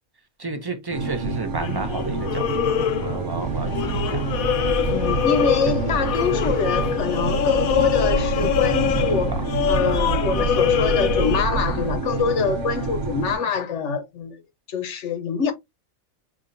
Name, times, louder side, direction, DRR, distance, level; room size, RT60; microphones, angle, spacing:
voice 1, 0.4-2.5 2.8-4.2 4.9-6.2 8.9-9.4 13.2-13.3, right 3 dB, 30° right, 0.4 m, -32 dB
sound 1, 0.9-13.3, right 3 dB, 65° right, 0.9 m, -29 dB
sound 2, 1.6-3.3 3.7-11.4, left 10 dB, 85° left, 1.1 m, -25 dB
sound 3, 3.4-12.0, right 3 dB, 30° left, 1.0 m, -29 dB
voice 2, 4.9-9.4 9.7-14.4 14.7-15.5, left 5 dB, 60° left, 1.1 m, -25 dB
5.5 x 2.9 x 2.5 m
omnidirectional pair, 1.4 m